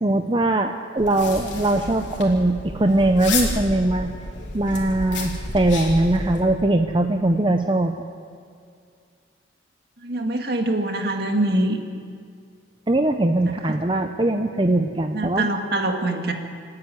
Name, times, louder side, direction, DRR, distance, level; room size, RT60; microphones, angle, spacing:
voice 1, 0.0-4.1 4.5-7.9 12.9-15.5, right 1 dB, 25° right, 5 dB, 0.7 m, -21 dB
sound 1, 1.0-6.4, left 3 dB, 75° left, 3.6 m, -31 dB
voice 2, 10.0-11.8 13.5-13.7 15.1-16.3, right 1 dB, 55° right, 3 dB, 2.1 m, -24 dB
27.5 x 9.8 x 9.8 m, 2.3 s
head